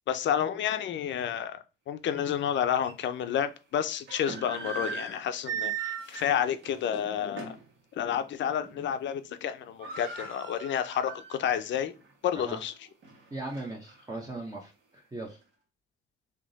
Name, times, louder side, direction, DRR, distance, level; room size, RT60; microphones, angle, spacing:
voice 1, 0.1-1.6 1.9-7.6 8.0-11.9 12.2-12.7, left 9 dB, 70° left, 0.6 m, -30 dB
sound 1, 2.2-2.3 2.8-2.9 3.9-7.7 8.1-8.3 8.6-9.1 9.3-9.4 9.6-11.6 12.0-12.1 12.7-14.0, right 6 dB, 70° right, 1.7 m, -39 dB
voice 2, 13.3-15.4, right 2 dB, 20° right, 0.9 m, -38 dB
3.5 x 2.8 x 3.9 m
cardioid pair, 90°, 20 cm